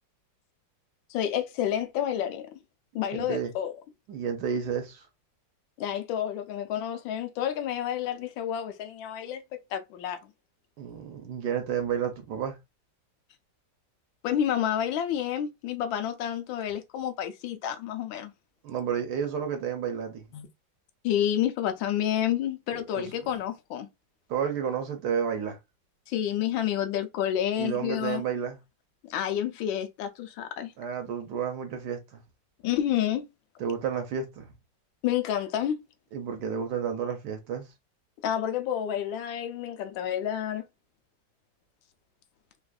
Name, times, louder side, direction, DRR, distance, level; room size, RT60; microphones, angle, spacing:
voice 1, 1.1-2.5 2.9-3.7 5.8-9.4 9.7-10.2 14.2-18.3 20.3-20.5 21.0-23.9 26.1-28.2 29.0-30.7 32.6-33.2 35.0-35.8 38.2-40.6, left 10 dB, 85° left, 1.4 m, -29 dB
voice 2, 3.1-3.5 4.1-5.1 10.8-12.6 18.6-20.3 22.9-23.0 24.3-25.6 27.6-28.6 30.8-32.2 33.6-34.5 36.1-37.7, right 7 dB, 70° right, 1.1 m, -31 dB
3.4 x 2.4 x 2.2 m
omnidirectional pair, 2.1 m